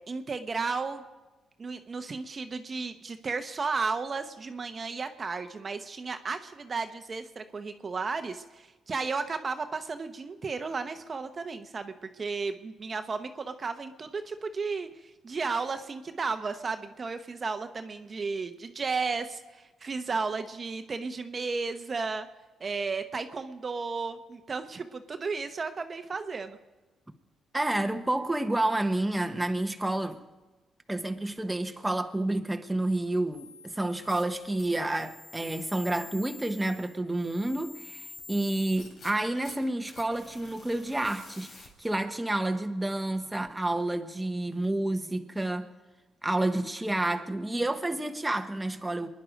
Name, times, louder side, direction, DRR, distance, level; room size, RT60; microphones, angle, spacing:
voice 1, 0.1-1.0 1.6-14.9 15.2-22.3 22.6-26.6, right 4 dB, 35° right, 0.9 m, -34 dB
voice 2, 27.5-30.2 30.9-45.7 46.2-49.1, right 1 dB, 10° right, 1.0 m, -29 dB
sound 1, 33.3-41.9, left 3 dB, 55° left, 3.8 m, -48 dB
24.0 x 10.5 x 5.2 m
cardioid pair, 90°, 0 cm